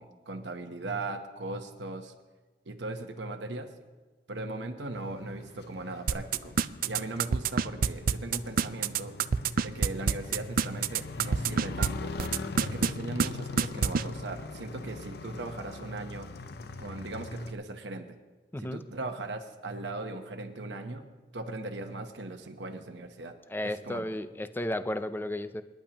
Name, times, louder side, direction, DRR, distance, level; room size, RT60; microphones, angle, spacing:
voice 1, 0.0-2.1 2.7-3.7 4.3-6.6 6.8-9.1 9.6-12.1 12.6-16.3 16.8-18.2 18.6-21.0 21.3-23.3 23.6-24.0, right 2 dB, 85° right, 5 dB, 1.0 m, -38 dB
Motorcycle, 4.9-17.5, left 3 dB, 60° left, 0.7 m, -41 dB
sound 1, 6.1-11.9 12.2-12.9 13.2-13.3 13.6-14.0, right 6 dB, 55° right, 0.4 m, -25 dB
voice 2, 23.5-25.6, left 1 dB, 10° left, 11 dB, 0.5 m, -33 dB
27.5 x 10.5 x 3.0 m, 1.3 s
head